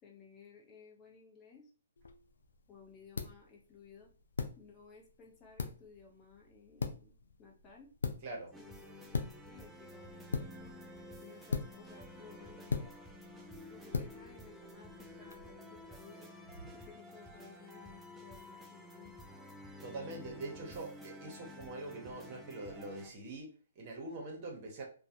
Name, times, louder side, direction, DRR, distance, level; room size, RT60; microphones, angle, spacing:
voice 1, 0.0-1.7 2.7-4.1 4.6-7.1 7.4-7.9 8.5-10.8 11.2-12.9 13.6-16.3 16.7-19.3, left 5 dB, 25° left, -1 dB, 0.7 m, -57 dB
sound 1, 2.0-15.4, left 5 dB, 80° left, 0.3 m, -42 dB
sound 2, 8.5-23.1, left 1 dB, 5° right, 0.3 m, -51 dB
voice 2, 19.8-24.8, right 2 dB, 40° right, 1 dB, 0.8 m, -44 dB
2.2 x 2.0 x 2.8 m, 0.38 s
hypercardioid pair, 140°, 0 cm